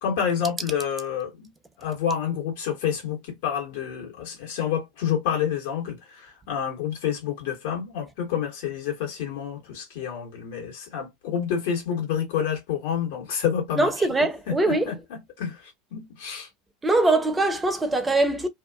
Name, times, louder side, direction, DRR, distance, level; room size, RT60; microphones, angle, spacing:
voice 1, 0.0-1.5 1.8-14.1 14.5-16.5, left 8 dB, 70° left, 1.3 m, -29 dB
voice 2, 13.8-14.9 16.8-18.5, right 2 dB, 15° right, 0.7 m, -22 dB
2.7 x 2.4 x 2.3 m
hypercardioid pair, 85°, 0 cm